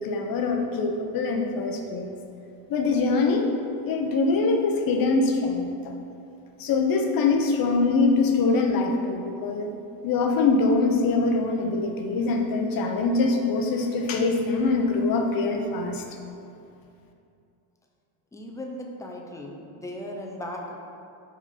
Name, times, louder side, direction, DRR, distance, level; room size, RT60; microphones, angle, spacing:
voice 1, 0.0-2.2 2.7-3.5 3.8-5.9 6.6-9.7 10.0-16.2, left 3 dB, 45° left, 3 dB, 0.8 m, -23 dB
voice 2, 18.3-20.8, left 1 dB, 5° left, 0 dB, 0.5 m, -37 dB
5.0 x 4.1 x 5.6 m, 2.6 s
cardioid pair, 140°, 48 cm